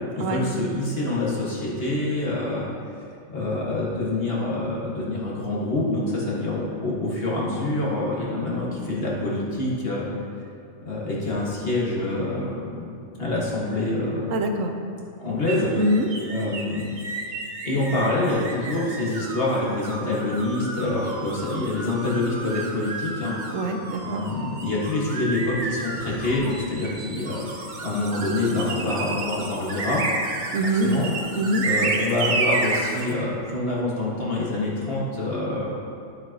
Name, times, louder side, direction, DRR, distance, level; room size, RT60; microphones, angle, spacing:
voice 1, 0.1-2.7 3.3-10.1 10.8-14.3 15.2-15.7 16.3-16.9 17.6-23.3 24.0-27.5 27.8-30.0 30.8-31.1 31.6-35.7, left 2 dB, 50° left, -5 dB, 1.9 m, -26 dB
voice 2, 14.3-14.7 15.7-16.1 23.5-24.2 30.5-30.9 31.4-31.6, right 1 dB, 80° right, 4 dB, 1.1 m, -24 dB
sound 1, 15.5-33.1, right 3 dB, 45° right, 0.8 m, -31 dB
12.5 x 7.8 x 2.9 m, 2.5 s
omnidirectional pair, 1.3 m